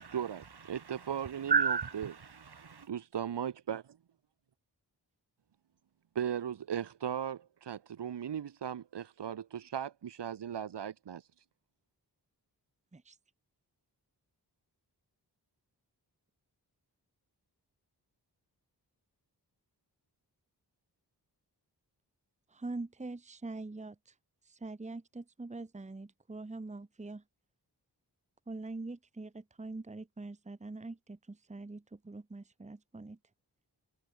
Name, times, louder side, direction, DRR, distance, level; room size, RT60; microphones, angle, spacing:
voice 1, 0.0-2.9, right 5 dB, 70° right, 4.3 m, -34 dB
voice 2, 0.7-1.5 2.9-3.8 6.1-11.3, right 9 dB, 90° right, 1.1 m, -37 dB
voice 3, 22.5-24.1 24.5-27.2 28.5-33.2, right 2 dB, 15° right, 1.0 m, -44 dB
wide cardioid pair, 75°, 40 cm